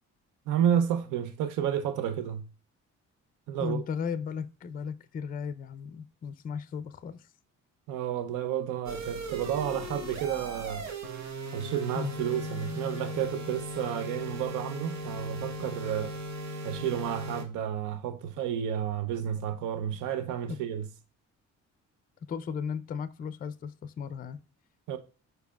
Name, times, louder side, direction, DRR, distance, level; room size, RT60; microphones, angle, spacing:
voice 1, 0.5-2.4 3.5-3.8 7.9-10.9 11.5-16.1 16.6-20.9 24.9-25.0, right 9 dB, 90° right, 0.6 m, -31 dB
voice 2, 3.6-7.3 11.9-12.1 20.5-20.6 22.3-24.4, left 6 dB, 30° left, 0.4 m, -35 dB
sound 1, 8.9-17.5, right 1 dB, 65° right, 1.2 m, -38 dB
4.9 x 4.7 x 2.2 m
cardioid pair, 90°, 30 cm